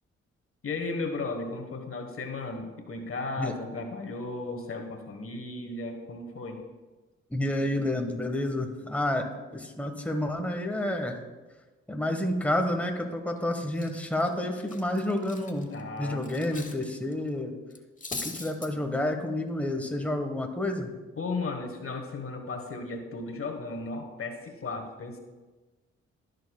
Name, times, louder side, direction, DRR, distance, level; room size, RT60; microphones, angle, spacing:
voice 1, 0.6-6.6 15.7-16.3 21.2-25.2, left 3 dB, 45° left, 5 dB, 1.4 m, -35 dB
voice 2, 7.3-9.2 9.5-11.1 11.9-15.7 16.0-17.6 18.2-20.9, left 1 dB, 5° left, 4 dB, 1.3 m, -29 dB
Cutlery silverware, 13.1-13.4 13.7-16.8 17.1-17.3 17.7-18.7, left 3 dB, 25° left, 1.2 m, -41 dB
15.0 x 6.6 x 2.3 m, 1.2 s
hypercardioid pair, 40°, 31 cm